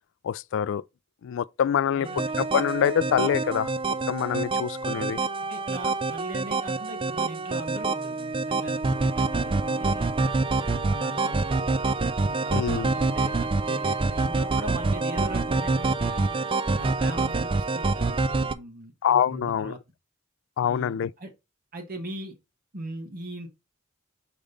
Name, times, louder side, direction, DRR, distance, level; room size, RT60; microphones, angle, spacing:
voice 1, 0.2-0.8 1.2-2.1 2.4-5.2 12.5-12.9 19.0-19.8 20.6-21.1, left 8 dB, 65° left, 0.3 m, -25 dB
sound 1, 2.1-18.5, right 3 dB, 25° right, 0.4 m, -26 dB
voice 2, 5.2-10.3 10.6-11.7 12.2-16.4 16.7-19.8 20.6-21.3 21.7-22.3 22.7-23.5, right 1 dB, 45° right, 1.4 m, -40 dB
5.2 x 5.0 x 3.9 m
head